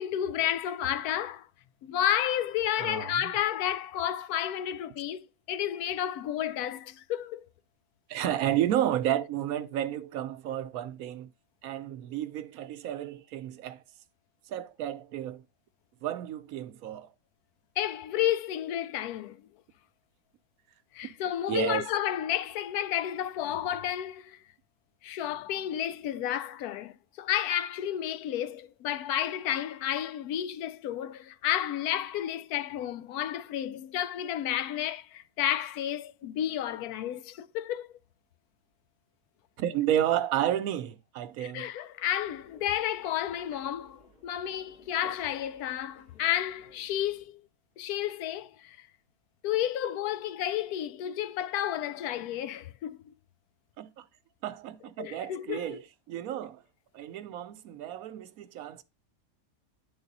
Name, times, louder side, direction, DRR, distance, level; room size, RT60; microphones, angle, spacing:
voice 1, 0.0-1.5 1.8-7.5 17.8-19.4 20.9-24.4 25.0-37.9 41.4-47.4 47.8-48.9 49.4-53.1 55.0-55.8, left 11 dB, 85° left, 1.1 m, -31 dB
voice 2, 2.8-3.3 8.1-11.3 11.6-13.8 14.5-15.4 16.0-17.1 21.5-21.9 39.6-41.7 53.8-54.1 54.4-55.8 56.1-56.6 56.9-58.8, right 11 dB, 75° right, 1.0 m, -31 dB
sound 1, 42.1-47.2, left 2 dB, 40° left, 3.4 m, -57 dB
9.6 x 3.9 x 3.9 m
omnidirectional pair, 1.6 m